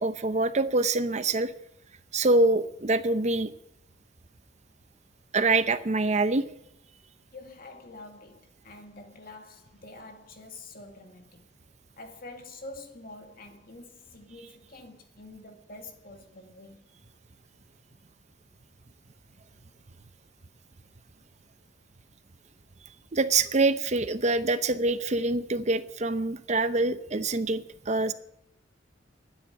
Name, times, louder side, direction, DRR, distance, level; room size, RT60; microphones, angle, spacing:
voice 1, 0.0-1.5 2.1-3.5 5.3-6.4 23.1-28.1, right 2 dB, 40° right, 0.7 m, -25 dB
voice 2, 7.3-11.4 12.0-16.9, left 2 dB, 50° left, 2.3 m, -47 dB
12.0 x 9.8 x 10.0 m
head